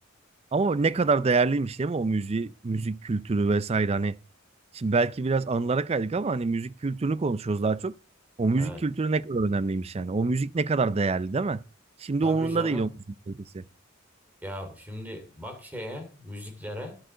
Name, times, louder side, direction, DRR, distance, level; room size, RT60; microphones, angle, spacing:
voice 1, 0.5-4.2 4.7-7.9 8.4-11.6 12.0-12.9 13.3-13.6, right 3 dB, 30° right, 0.4 m, -26 dB
voice 2, 12.2-12.8 14.4-17.0, left 1 dB, 10° right, 2.9 m, -38 dB
11.5 x 6.3 x 7.7 m
head